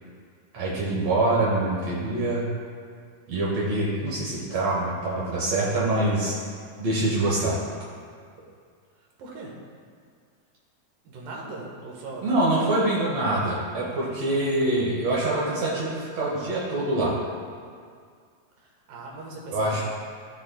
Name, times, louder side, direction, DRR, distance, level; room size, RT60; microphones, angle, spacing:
voice 1, 0.5-2.4 3.3-6.4 6.8-7.6 12.2-17.1 19.5-19.8, right 2 dB, 90° right, -6 dB, 1.4 m, -25 dB
voice 2, 9.2-9.5 11.0-12.3 12.8-12.9 18.6-19.8, right 2 dB, 65° right, -3 dB, 2.5 m, -39 dB
15.0 x 5.2 x 2.2 m, 2.1 s
omnidirectional pair, 4.6 m